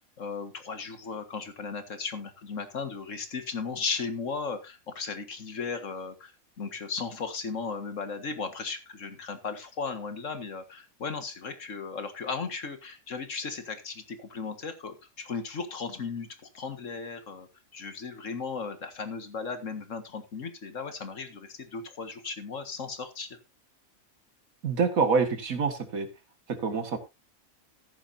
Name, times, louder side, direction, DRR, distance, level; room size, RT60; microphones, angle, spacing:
voice 1, 0.2-6.3 6.6-16.3 16.5-17.5 17.7-23.4, left 5 dB, 65° left, 8 dB, 2.0 m, -36 dB
voice 2, 24.6-26.1 26.5-27.0, right 5 dB, 80° right, 8 dB, 2.2 m, -26 dB
14.0 x 11.0 x 2.7 m, 0.24 s
omnidirectional pair, 1.4 m